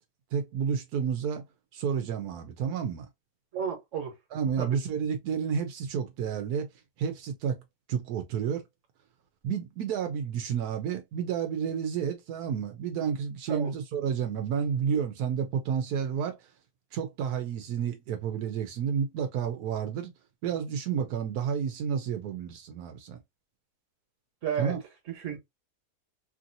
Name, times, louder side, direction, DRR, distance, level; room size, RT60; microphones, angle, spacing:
voice 1, 0.3-1.5 1.7-3.1 4.3-6.7 7.0-7.6 7.9-8.6 9.4-16.4 16.9-20.1 20.4-23.2 24.6-24.8, right 7 dB, 90° right, 1.2 m, -30 dB
voice 2, 3.5-4.2 4.6-4.8 13.5-13.7 24.4-24.7 25.1-25.4, right 7 dB, 55° right, 1.4 m, -32 dB
3.2 x 2.6 x 2.6 m
omnidirectional pair, 1.6 m